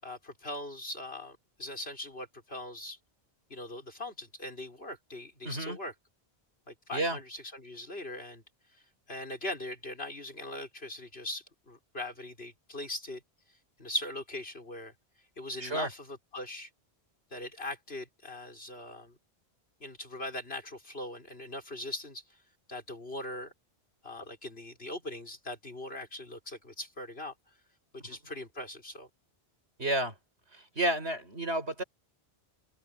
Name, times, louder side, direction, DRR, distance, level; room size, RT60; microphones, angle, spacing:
voice 1, 0.0-3.0 3.5-5.9 6.7-8.4 9.1-13.2 13.8-14.9 15.4-16.7 17.3-19.2 19.8-22.2 22.7-23.5 24.0-27.3 27.9-29.1, left 1 dB, 65° left, 6.0 m, -40 dB
voice 2, 5.4-5.8 6.9-7.2 15.6-15.9 28.0-28.2 29.8-30.1 30.5-31.8, right 1 dB, 85° right, 6.2 m, -31 dB
open air
omnidirectional pair, 1.1 m